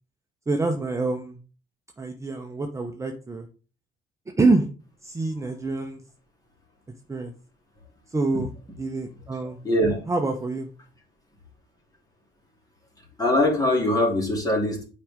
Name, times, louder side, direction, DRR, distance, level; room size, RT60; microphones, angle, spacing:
voice 1, 0.5-1.4 2.0-3.5 4.4-4.7 5.0-6.0 7.1-7.3 8.1-8.5 8.8-10.7, right 3 dB, 15° right, 3 dB, 0.8 m, -26 dB
voice 2, 9.6-10.0 13.2-14.9, left 1 dB, 20° left, 0 dB, 2.9 m, -22 dB
9.0 x 5.0 x 3.6 m, 0.37 s
cardioid pair, 110°, 17 cm